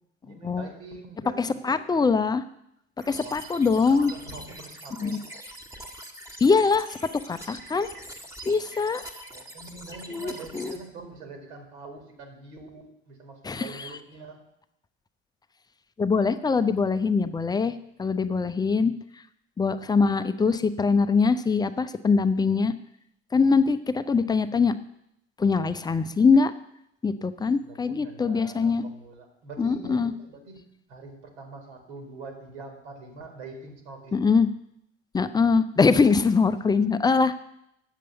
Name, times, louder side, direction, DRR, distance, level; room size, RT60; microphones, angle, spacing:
voice 1, 0.2-1.8 3.1-5.2 9.3-14.4 18.0-18.1 27.5-30.6 30.9-34.3 36.7-36.8, right 3 dB, 70° right, 4 dB, 2.2 m, -44 dB
voice 2, 1.4-2.4 3.1-4.1 5.0-5.1 6.4-7.0 7.3-7.9 8.5-9.0 10.1-10.8 13.4-13.9 16.0-17.7 18.0-18.9 19.6-22.7 23.3-24.8 25.4-26.5 27.0-28.8 29.6-30.1 34.1-34.5 35.1-37.4, left 4 dB, 10° left, 11 dB, 0.5 m, -23 dB
sound 1, 3.0-10.8, equal, 10° right, 1.5 m, -43 dB
9.1 x 7.6 x 6.8 m, 0.77 s
figure-of-eight pair, 60°, 35 cm